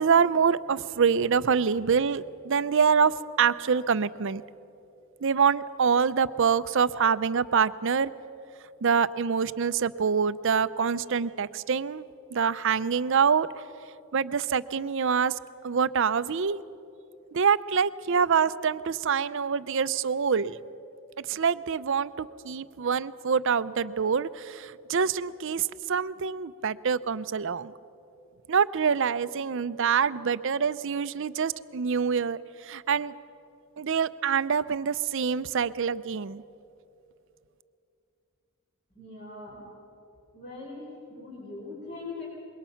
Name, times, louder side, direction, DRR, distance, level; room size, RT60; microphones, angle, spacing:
voice 1, 0.0-4.4 5.2-8.1 8.8-12.0 12.3-13.5 14.1-15.3 15.6-16.6 17.3-20.6 21.3-27.7 28.5-33.1 33.8-36.4, right 6 dB, 60° right, 15 dB, 0.5 m, -25 dB
voice 2, 38.9-39.6 40.3-42.2, left 3 dB, 45° left, -6 dB, 4.9 m, -41 dB
25.5 x 22.0 x 5.7 m, 2.8 s
head